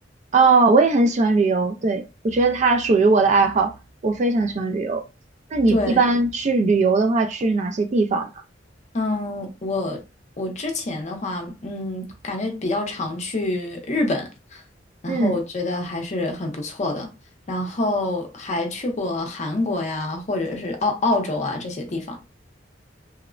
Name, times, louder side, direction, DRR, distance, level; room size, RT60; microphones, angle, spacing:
voice 1, 0.3-3.7 4.0-5.0 5.5-8.3 15.1-15.4, right 3 dB, 40° right, 0.3 m, -19 dB
voice 2, 5.7-6.1 8.9-10.0 10.4-14.6 15.0-17.1 17.5-22.2, left 2 dB, 40° left, 0.6 m, -26 dB
3.0 x 2.0 x 2.4 m
head